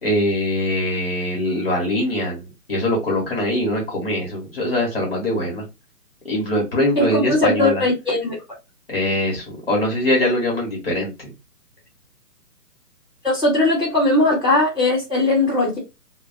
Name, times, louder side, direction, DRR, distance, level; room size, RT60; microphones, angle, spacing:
voice 1, 0.0-5.6 6.2-7.8 8.9-11.3, left 1 dB, 40° left, 1.2 m, -22 dB
voice 2, 6.9-8.4 13.2-15.8, left 2 dB, ahead, 1.2 m, -19 dB
2.3 x 2.2 x 3.8 m
hypercardioid pair, 175°, 47 cm